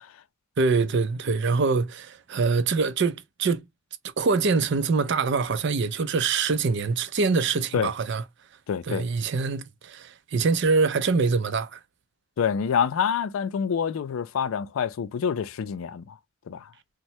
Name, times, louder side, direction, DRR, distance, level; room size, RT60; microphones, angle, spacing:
voice 1, 0.6-3.6 4.2-8.2 8.9-11.8, right 4 dB, 60° right, 0.4 m, -24 dB
voice 2, 8.7-9.0 12.4-16.2 16.5-16.7, left 7 dB, 80° left, 0.3 m, -27 dB
2.7 x 2.1 x 3.0 m
head